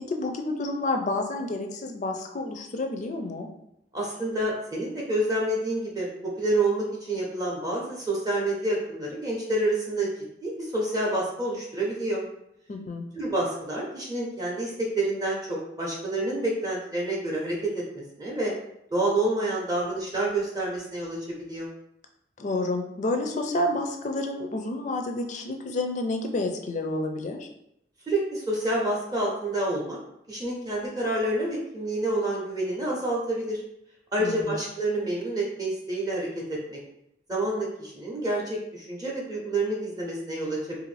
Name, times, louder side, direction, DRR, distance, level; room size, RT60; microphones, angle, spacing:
voice 1, 0.1-3.5 12.7-13.0 22.4-27.5 34.2-34.5, left 2 dB, 45° left, 4 dB, 0.4 m, -29 dB
voice 2, 3.9-10.1 10.4-12.2 13.1-18.5 18.9-21.2 21.5-21.7 28.1-30.0 30.3-33.6 34.1-36.8 37.3-40.8, right 1 dB, 20° right, -3 dB, 0.6 m, -28 dB
2.5 x 2.5 x 3.2 m, 0.79 s
head